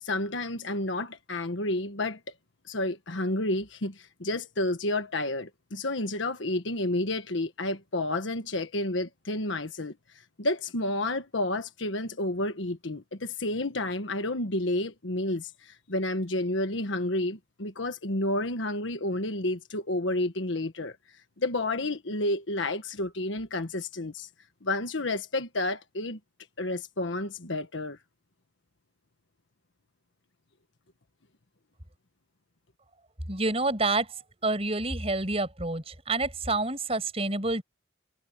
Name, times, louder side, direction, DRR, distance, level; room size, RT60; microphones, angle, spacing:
voice 1, 0.0-2.2 2.7-9.9 10.4-21.0 21.4-24.3 24.6-26.2 26.6-28.0, left 1 dB, 75° left, 1.4 m, -30 dB
voice 2, 33.3-34.2 34.4-37.6, right 2 dB, 30° right, 7.0 m, -28 dB
head